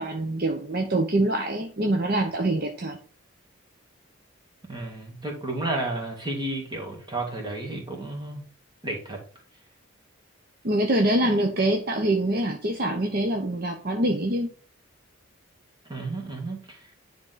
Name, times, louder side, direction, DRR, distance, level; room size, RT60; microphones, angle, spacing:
voice 1, 0.0-3.0 10.6-14.5, right 1 dB, 45° right, 3 dB, 0.8 m, -25 dB
voice 2, 4.7-8.4 8.8-9.2 11.2-11.3 15.9-16.8, right 2 dB, 20° right, 0 dB, 2.0 m, -32 dB
10.0 x 3.8 x 3.8 m, 0.40 s
head